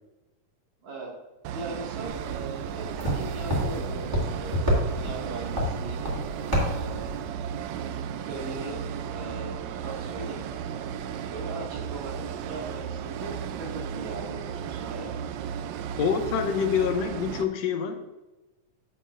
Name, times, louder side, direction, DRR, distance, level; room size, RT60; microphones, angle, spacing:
sound 1, 1.4-17.4, right 8 dB, 80° right, 1.6 m, -35 dB
voice 1, 1.5-7.1 8.3-10.4 11.3-15.1, right 2 dB, 65° right, -3 dB, 3.3 m, -39 dB
sound 2, 2.1-7.3, equal, 10° right, 2.1 m, -29 dB
voice 2, 16.0-18.1, left 7 dB, 75° left, 6 dB, 1.7 m, -26 dB
10.0 x 7.9 x 2.5 m, 1.1 s
omnidirectional pair, 3.6 m